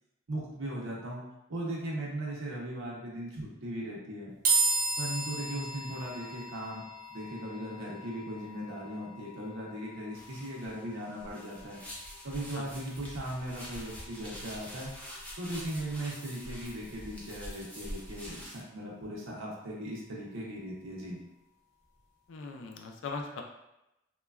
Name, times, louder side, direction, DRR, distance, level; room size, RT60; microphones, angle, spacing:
voice 1, 0.3-1.2 1.5-4.3 5.0-6.8 7.1-11.8 12.2-14.9 15.4-21.2, right 1 dB, 85° right, -4 dB, 0.6 m, -38 dB
sound 1, 4.4-17.8, right 3 dB, 45° right, 0.5 m, -37 dB
sound 2, 10.1-18.6, equal, 5° left, 0.4 m, -45 dB
voice 2, 22.3-23.4, left 4 dB, 75° left, 2 dB, 0.4 m, -39 dB
3.0 x 2.2 x 2.3 m, 0.90 s
head